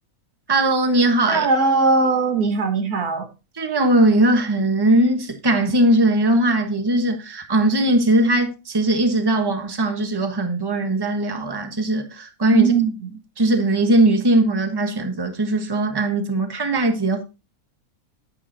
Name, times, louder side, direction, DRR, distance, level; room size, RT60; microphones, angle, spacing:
voice 1, 0.5-1.5 3.5-12.7 13.4-17.2, right 1 dB, 15° right, 1.2 m, -19 dB
voice 2, 1.3-3.3 12.5-12.9, right 4 dB, 85° right, 2.0 m, -19 dB
10.0 x 8.7 x 2.8 m
omnidirectional pair, 1.5 m